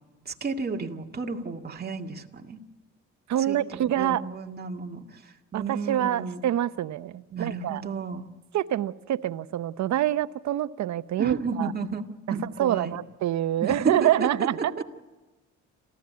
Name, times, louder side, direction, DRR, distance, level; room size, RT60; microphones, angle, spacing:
voice 1, 0.3-2.6 3.5-6.4 7.3-8.3 11.2-12.0 12.3-13.0 13.6-13.8 14.0-14.8, right 4 dB, 30° right, 2 dB, 2.1 m, -33 dB
voice 2, 3.3-4.2 5.5-7.8 8.5-11.7 12.3-14.8, right 12 dB, 65° right, 13 dB, 0.8 m, -26 dB
27.5 x 15.0 x 9.5 m, 1.2 s
cardioid pair, 90°, 30 cm